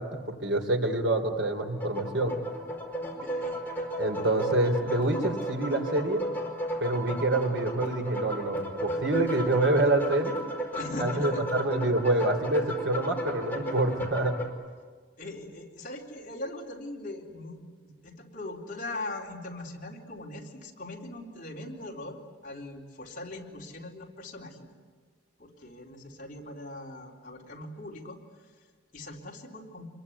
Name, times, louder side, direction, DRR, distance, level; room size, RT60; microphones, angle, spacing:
voice 1, 0.0-2.4 4.0-6.2 6.8-10.4 11.0-14.3, right 2 dB, 80° right, 5 dB, 3.4 m, -27 dB
sound 1, 1.6-14.5, right 1 dB, 10° left, 4.8 m, -34 dB
voice 2, 3.1-3.6 10.7-11.4 15.2-24.7 25.4-28.2 28.9-29.9, left 2 dB, 45° left, -1 dB, 4.0 m, -40 dB
27.5 x 22.5 x 9.7 m, 1.5 s
head